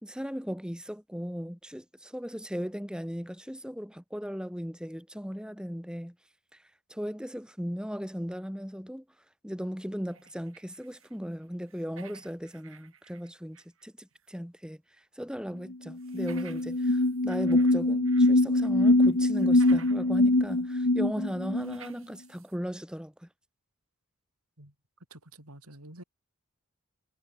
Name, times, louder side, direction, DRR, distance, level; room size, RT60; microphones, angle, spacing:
voice 1, 0.0-6.2 6.9-9.0 9.4-14.8 15.2-23.3, equal, 5° right, 3.9 m, -37 dB
sound 1, 10.1-11.2 11.4-13.8 14.2-14.3 16.0-18.3 18.6-20.1 20.5-20.6 21.6-22.6, right 6 dB, 65° right, 6.4 m, -54 dB
sound 2, 15.7-15.8 16.0-21.8, left 2 dB, 65° left, 1.5 m, -23 dB
voice 2, 25.1-26.0, right 1 dB, 90° right, 7.7 m, -49 dB
head